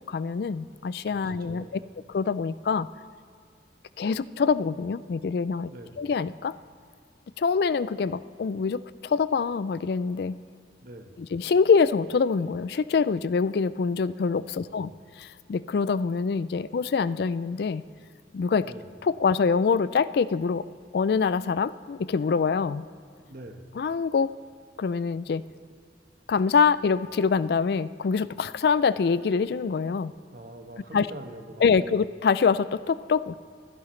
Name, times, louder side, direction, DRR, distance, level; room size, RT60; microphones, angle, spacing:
voice 1, 0.1-1.6 2.1-2.9 4.0-5.7 6.0-6.5 7.4-10.4 11.3-14.9 15.2-17.8 18.3-18.7 19.0-20.6 20.9-22.8 23.8-24.3 24.8-25.4 26.3-30.1 30.9-31.1 31.6-33.4, left 5 dB, 60° left, 16 dB, 0.3 m, -25 dB
voice 2, 1.1-1.8 5.6-6.1 10.8-11.2 14.5-15.0 18.6-18.9 23.3-23.7 30.3-32.0, right 1 dB, 55° right, 5 dB, 1.2 m, -44 dB
25.0 x 10.5 x 3.2 m, 2.2 s
head